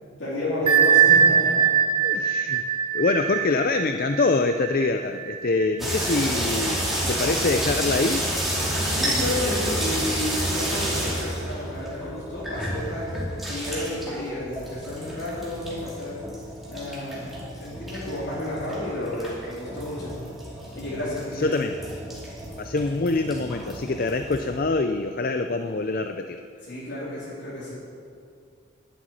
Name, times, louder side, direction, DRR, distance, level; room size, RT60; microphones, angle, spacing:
voice 1, 0.2-1.6 8.8-16.2 16.7-17.3 17.6-20.2 20.7-21.6 26.6-27.7, left 1 dB, 75° left, -8 dB, 3.6 m, -31 dB
Bell, 0.7-6.1, right 8 dB, 25° right, 0.7 m, -21 dB
voice 2, 2.0-2.6 2.9-8.2 21.3-21.8 22.6-26.4, left 3 dB, 45° left, 7 dB, 0.4 m, -25 dB
sound 1, 5.8-24.6, right 1 dB, ahead, 2.5 m, -30 dB
11.0 x 7.9 x 9.7 m, 2.5 s
head